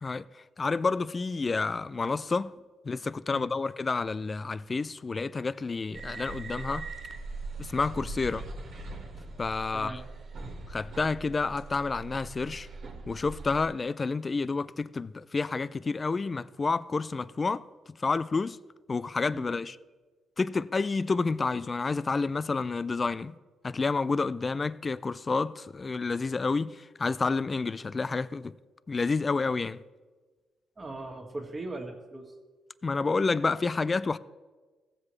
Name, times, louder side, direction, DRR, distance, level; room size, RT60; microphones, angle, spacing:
voice 1, 0.6-2.5 2.8-6.9 7.6-8.5 9.4-9.9 10.7-12.7 13.1-18.6 18.9-19.8 20.4-23.3 23.6-28.5 28.9-29.8 32.8-34.2, left 4 dB, 30° left, 0.3 m, -29 dB
sound 1, 5.9-13.7, right 3 dB, 60° right, 1.7 m, -41 dB
voice 2, 9.7-10.1 19.3-19.5 30.7-32.3, right 2 dB, 30° right, 1.7 m, -39 dB
16.0 x 7.5 x 3.2 m
cardioid pair, 90°, 0 cm